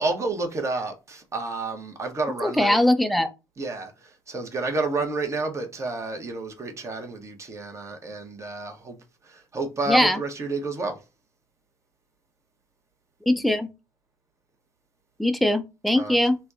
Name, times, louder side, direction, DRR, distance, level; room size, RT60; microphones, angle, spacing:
voice 1, 0.0-2.8 3.6-9.0 9.2-11.0 15.9-16.2, right 3 dB, 30° right, 1.0 m, -30 dB
voice 2, 2.4-3.3 9.9-10.2 13.3-13.7 15.2-16.4, left 1 dB, ahead, 0.5 m, -21 dB
3.2 x 2.2 x 2.6 m
hypercardioid pair, 50°, 9 cm